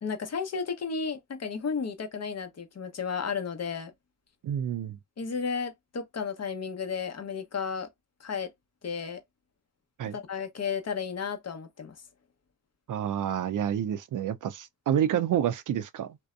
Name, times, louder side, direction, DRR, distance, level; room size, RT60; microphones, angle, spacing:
voice 1, 0.0-3.9 5.2-7.9 8.2-8.5 8.8-9.2 10.0-12.0, left 6 dB, 50° left, 0.8 m, -33 dB
voice 2, 4.4-5.0 10.0-10.2 12.9-16.2, right 10 dB, 60° right, 0.5 m, -28 dB
2.6 x 2.1 x 2.4 m
cardioid pair, 55°, 35 cm